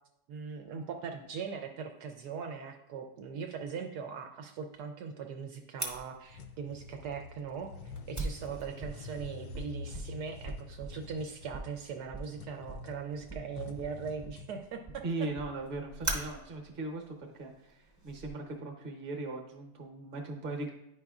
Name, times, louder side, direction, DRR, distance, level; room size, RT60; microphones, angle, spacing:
voice 1, 0.3-15.0, right 6 dB, 75° right, 4 dB, 1.1 m, -40 dB
Fire, 5.8-18.3, right 2 dB, 15° right, 0.7 m, -43 dB
sound 1, 6.3-14.6, left 4 dB, 75° left, 1.1 m, -47 dB
voice 2, 15.0-20.7, right 2 dB, 40° right, 2 dB, 1.0 m, -39 dB
9.5 x 5.1 x 2.4 m, 0.85 s
omnidirectional pair, 1.8 m